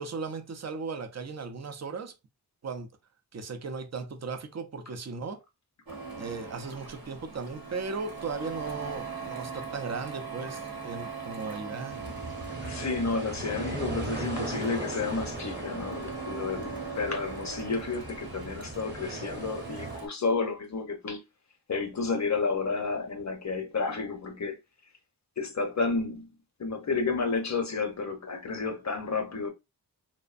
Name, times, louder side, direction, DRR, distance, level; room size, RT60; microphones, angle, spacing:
voice 1, 0.0-2.1 2.6-2.9 3.3-5.4 6.2-12.1, right 4 dB, 40° right, 0.5 m, -37 dB
Printer, 5.9-20.1, right 5 dB, 55° right, 0.9 m, -41 dB
sound 1, 11.9-20.0, right 2 dB, 25° right, 1.0 m, -38 dB
voice 2, 12.6-21.2 21.7-24.6 25.4-26.3 26.6-29.5, left 4 dB, 40° left, 0.7 m, -31 dB
2.5 x 2.1 x 2.4 m
cardioid pair, 55°, 41 cm